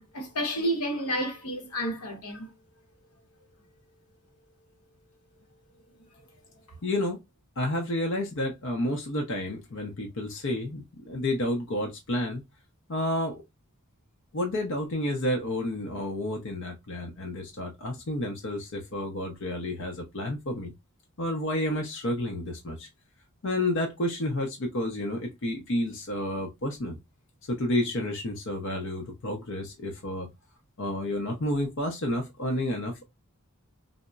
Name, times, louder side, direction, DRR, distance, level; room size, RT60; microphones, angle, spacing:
voice 1, 0.0-2.5, equal, 90° left, 1.0 m, -30 dB
voice 2, 6.8-7.2 7.6-12.4 12.9-13.4 14.3-20.7 21.2-22.9 23.4-27.0 27.5-30.3 30.8-33.0, left 1 dB, 60° left, 0.6 m, -30 dB
3.8 x 2.0 x 2.2 m
head